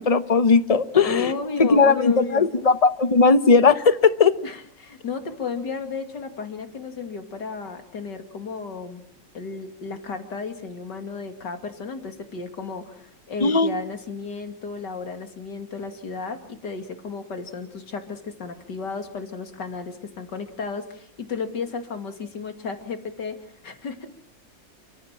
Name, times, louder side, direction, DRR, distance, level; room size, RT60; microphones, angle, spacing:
voice 1, 0.0-1.3 1.6-4.3 13.4-13.7, left 4 dB, 25° left, 12 dB, 0.8 m, -18 dB
voice 2, 1.0-2.5 4.4-9.0 9.3-24.1, left 5 dB, 65° left, 7 dB, 3.0 m, -33 dB
29.5 x 15.0 x 8.9 m, 0.62 s
omnidirectional pair, 2.0 m